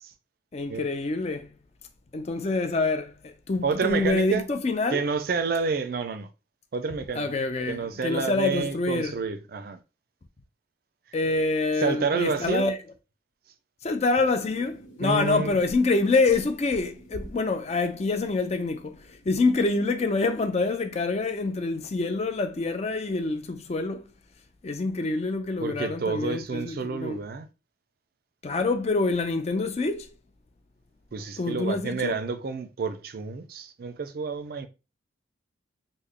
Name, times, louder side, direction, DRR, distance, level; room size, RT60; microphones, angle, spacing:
voice 1, 0.5-1.5 2.1-5.1 7.1-9.1 11.1-12.8 13.8-24.1 24.6-27.2 28.4-30.1 31.4-32.2, left 3 dB, 35° left, 0.4 m, -26 dB
voice 2, 3.6-4.4 4.9-6.3 6.7-7.3 7.7-9.8 11.8-12.7 15.0-15.5 25.6-27.5 31.1-34.7, right 5 dB, 50° right, 0.4 m, -29 dB
sound 1, 14.2-19.4, right 3 dB, 80° left, 1.0 m, -52 dB
3.3 x 2.1 x 3.6 m
head